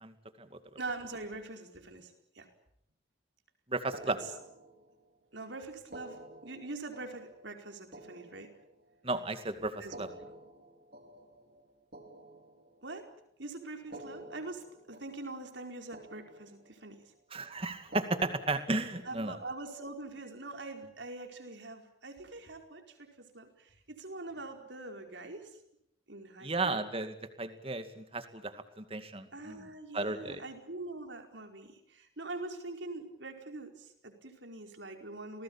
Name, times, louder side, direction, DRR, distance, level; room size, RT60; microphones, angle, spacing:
voice 1, 0.8-2.5 4.0-4.3 5.3-8.5 9.8-10.3 12.8-13.1 13.4-17.0 19.0-25.6 26.1-26.8 29.3-35.4, right 2 dB, 75° right, 4 dB, 4.8 m, -44 dB
voice 2, 3.7-4.2 9.0-10.1 17.3-19.4 26.4-29.6 29.9-30.4, right 2 dB, 30° right, 9 dB, 2.3 m, -34 dB
sound 1, 3.9-5.2 5.8-9.1 9.8-13.1 13.8-15.7 15.9-17.0 17.8-19.6, right 1 dB, 55° right, 4.1 m, -51 dB
28.5 x 19.5 x 8.9 m, 0.77 s
head